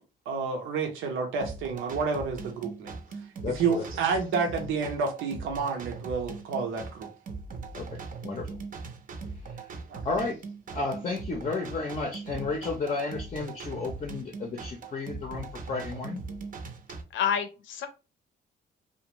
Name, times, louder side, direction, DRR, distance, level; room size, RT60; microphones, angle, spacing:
voice 1, 0.3-7.1 9.7-10.0, right 5 dB, 85° right, 0.6 m, -30 dB
sound 1, 1.4-17.0, right 4 dB, 45° right, 0.6 m, -40 dB
voice 2, 3.4-3.8 7.7-8.6 9.5-9.7 10.0-10.4 10.7-16.2, left 3 dB, 35° left, 0.5 m, -33 dB
voice 3, 17.1-17.9, left 8 dB, 75° left, 0.6 m, -28 dB
2.4 x 2.1 x 2.9 m
cardioid pair, 90°, 20 cm